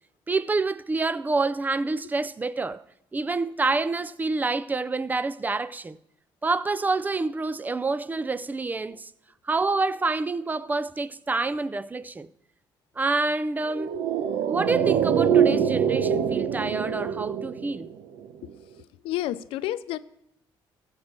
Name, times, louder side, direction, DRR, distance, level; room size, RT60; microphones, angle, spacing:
voice 1, 0.3-2.8 3.1-6.0 6.4-9.1 9.4-12.3 13.0-14.0 14.5-17.9, right 3 dB, 20° right, 0.5 m, -27 dB
sound 1, 13.7-18.3 18.5-18.6, right 8 dB, 85° right, 0.9 m, -24 dB
voice 2, 18.8-20.0, left 14 dB, 90° left, 0.5 m, -31 dB
14.5 x 4.9 x 7.5 m
cardioid pair, 90°, 9 cm